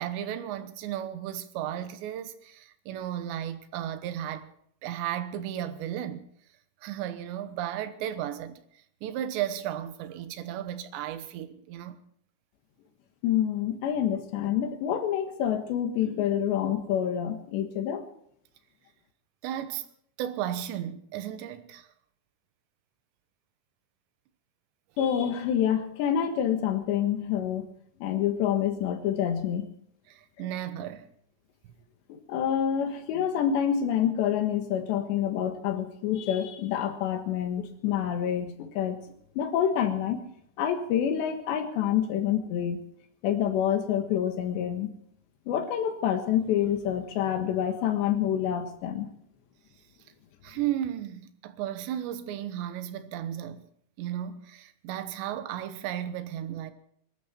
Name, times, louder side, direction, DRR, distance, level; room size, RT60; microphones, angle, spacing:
voice 1, 0.0-4.5 4.8-6.3 6.8-8.6 9.0-12.0 19.4-19.9 20.2-21.9 30.1-31.1 50.4-53.7 54.0-56.7, right 11 dB, 90° right, 3.4 m, -34 dB
voice 2, 13.2-18.0 25.0-27.7 28.0-29.7 32.1-39.0 39.4-40.2 40.6-42.8 43.2-44.9 45.5-49.1, left 9 dB, 85° left, 3.8 m, -27 dB
23.5 x 13.0 x 4.4 m
omnidirectional pair, 4.9 m